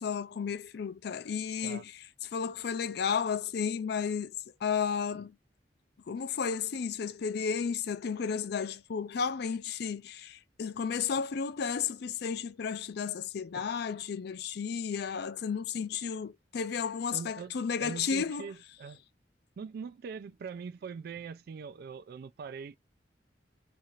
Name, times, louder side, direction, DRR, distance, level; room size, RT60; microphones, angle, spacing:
voice 1, 0.0-2.0 2.3-4.3 4.6-5.4 6.1-18.5, left 6 dB, 65° left, 0.4 m, -33 dB
voice 2, 17.1-17.5 17.8-19.0 19.6-22.8, right 5 dB, 60° right, 0.3 m, -42 dB
2.8 x 2.4 x 2.8 m
head